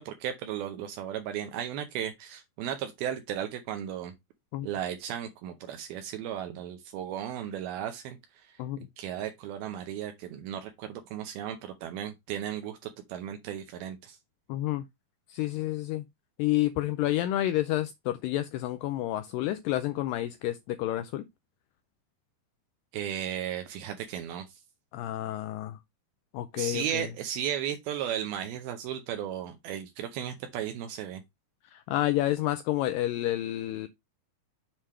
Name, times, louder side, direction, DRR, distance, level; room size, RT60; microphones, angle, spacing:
voice 1, 0.0-4.1 4.6-8.2 8.4-8.5 9.0-14.2 22.9-24.6 26.6-31.2, right 10 dB, 80° right, 2.6 m, -35 dB
voice 2, 14.5-14.8 15.3-16.1 16.4-21.3 24.9-25.8 26.3-27.1 31.7-33.9, left 14 dB, 90° left, 1.9 m, -29 dB
7.4 x 3.3 x 5.5 m
omnidirectional pair, 4.5 m